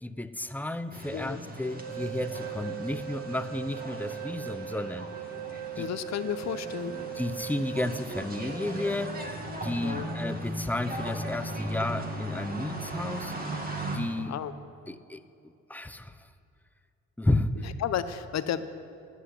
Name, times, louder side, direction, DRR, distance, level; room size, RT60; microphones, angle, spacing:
voice 1, 0.0-5.1 5.8-5.9 7.1-9.2 9.6-13.5 13.9-14.3 14.9-16.3 17.2-17.7, left 1 dB, 5° left, 11 dB, 0.6 m, -32 dB
sound 1, 0.9-14.0, right 1 dB, 30° right, 2.0 m, -38 dB
sound 2, 1.6-9.2, right 10 dB, 85° right, 1.2 m, -40 dB
voice 2, 5.8-7.0 9.8-10.1 14.3-14.5 17.8-18.7, left 9 dB, 60° left, 12 dB, 0.8 m, -32 dB
10.5 x 8.1 x 9.9 m, 2.5 s
cardioid pair, 90°, 30 cm